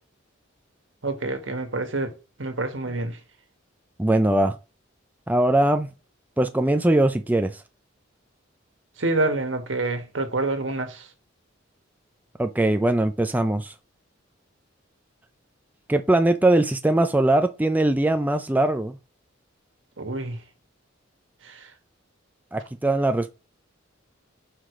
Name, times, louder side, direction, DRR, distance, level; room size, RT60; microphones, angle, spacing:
voice 1, 1.0-2.1 2.4-3.2 9.0-11.1 20.0-20.4 21.4-21.7, right 2 dB, 65° right, 1.6 m, -27 dB
voice 2, 4.0-4.5 5.3-5.9 6.4-7.6 12.4-13.7 15.9-19.0 22.5-23.4, right 1 dB, 10° right, 0.5 m, -21 dB
5.9 x 4.9 x 4.9 m
head